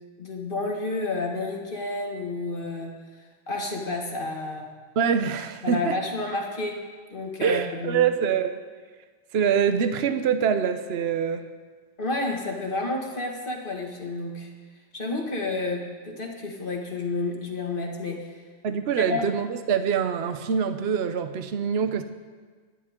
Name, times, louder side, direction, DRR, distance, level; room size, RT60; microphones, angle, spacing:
voice 1, 0.2-3.0 3.5-4.7 5.6-8.0 12.0-14.5 14.9-18.3 19.0-19.2, left 2 dB, 45° left, 0 dB, 2.1 m, -30 dB
voice 2, 5.0-6.0 7.4-8.6 9.3-11.4 18.6-22.0, right 7 dB, 60° right, 9 dB, 1.0 m, -24 dB
25.5 x 10.5 x 3.7 m, 1.5 s
omnidirectional pair, 1.3 m